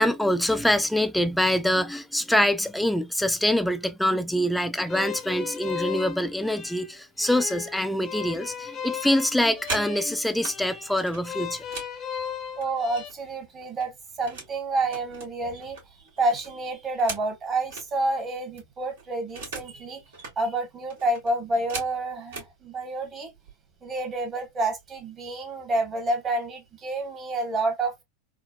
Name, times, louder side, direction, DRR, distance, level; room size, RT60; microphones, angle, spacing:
voice 1, 0.0-11.6, left 1 dB, 5° left, 0.4 m, -25 dB
sound 1, 4.9-13.1, left 8 dB, 35° left, 0.7 m, -36 dB
sound 2, 9.3-10.6 11.0-13.3 13.6-14.6 14.9-17.9 18.3-18.4 18.6-19.8 20.1-20.4 20.9-22.5 23.3-23.5 23.9-24.2 24.5-25.0, right 4 dB, 70° right, 1.7 m, -40 dB
voice 2, 12.6-20.0 20.4-23.3 23.8-28.0, right 2 dB, 30° right, 1.3 m, -29 dB
3.8 x 2.0 x 2.3 m
hypercardioid pair, 90°, 0 cm